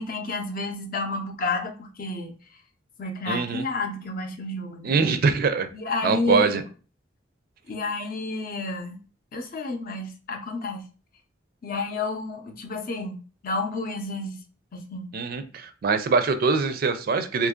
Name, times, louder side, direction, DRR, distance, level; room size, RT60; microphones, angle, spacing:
voice 1, 0.0-2.3 3.0-4.9 5.7-6.6 7.7-9.0 9.3-10.9 11.6-13.2 13.4-14.4 14.7-15.1, left 3 dB, 50° left, 5 dB, 0.6 m, -30 dB
voice 2, 3.3-3.6 4.8-5.7 6.0-6.6 15.1-17.5, right 4 dB, 50° right, 10 dB, 0.4 m, -23 dB
2.9 x 2.5 x 3.6 m, 0.37 s
head